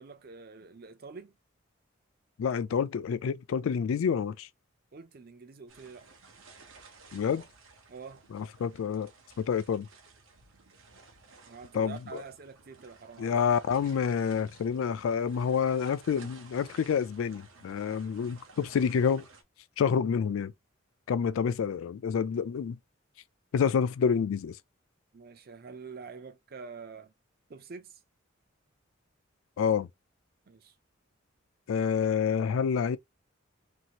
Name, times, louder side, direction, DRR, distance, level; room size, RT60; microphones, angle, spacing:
voice 1, 0.0-1.3 4.9-6.1 7.9-8.2 11.5-13.4 25.1-27.1 27.5-28.0 30.5-30.7, right 5 dB, 45° right, 0.5 m, -46 dB
voice 2, 2.4-4.5 7.1-7.4 8.3-9.1 9.4-9.9 11.7-12.2 13.2-19.2 19.8-20.5 21.1-22.8 23.5-24.6 29.6-29.9 31.7-33.0, left 7 dB, 80° left, 0.3 m, -28 dB
sound 1, 5.7-19.4, right 4 dB, 75° right, 0.8 m, -55 dB
2.8 x 2.5 x 2.9 m
head